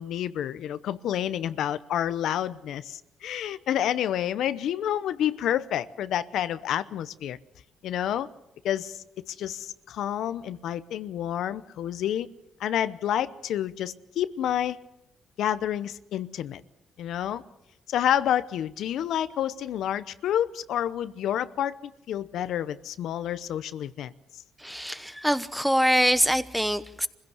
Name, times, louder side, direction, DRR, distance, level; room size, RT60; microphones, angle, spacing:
voice 1, 0.0-7.4 7.8-8.3 8.6-12.3 12.6-14.8 15.4-16.6 17.0-17.4 17.9-24.1, left 10 dB, 75° left, 0.8 m, -29 dB
voice 2, 24.6-27.1, equal, ahead, 1.0 m, -24 dB
24.5 x 16.0 x 8.1 m
cardioid pair, 90°, 0 cm